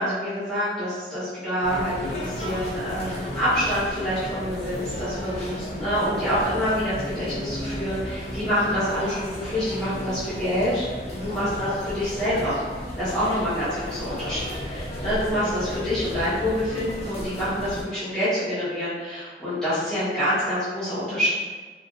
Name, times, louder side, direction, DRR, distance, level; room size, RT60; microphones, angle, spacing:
voice 1, 0.0-10.9 11.1-12.6 13.0-21.3, equal, 5° left, -15 dB, 1.1 m, -26 dB
sound 1, 1.6-17.8, equal, 35° left, 0.6 m, -34 dB
2.9 x 2.5 x 2.5 m, 1.3 s
head